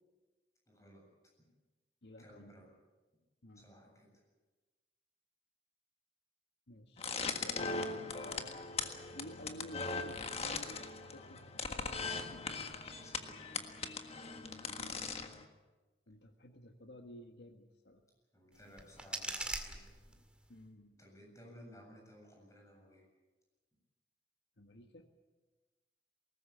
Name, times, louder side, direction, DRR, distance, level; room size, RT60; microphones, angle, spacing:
voice 1, 0.7-1.0 2.2-2.7 3.6-4.1 13.0-13.8 18.3-19.9 21.0-23.0, equal, 20° left, 0 dB, 7.7 m, -57 dB
voice 2, 2.0-2.7 3.4-3.7 6.7-8.5 9.1-12.6 14.6-15.3 16.1-18.0 20.5-20.9 24.6-25.1, equal, 75° left, 5 dB, 1.6 m, -54 dB
sound 1, 7.0-15.4, left 4 dB, 35° left, 1.6 m, -40 dB
sound 2, 18.5-20.5, right 2 dB, 5° right, 2.0 m, -43 dB
21.5 x 19.0 x 8.7 m, 1.2 s
head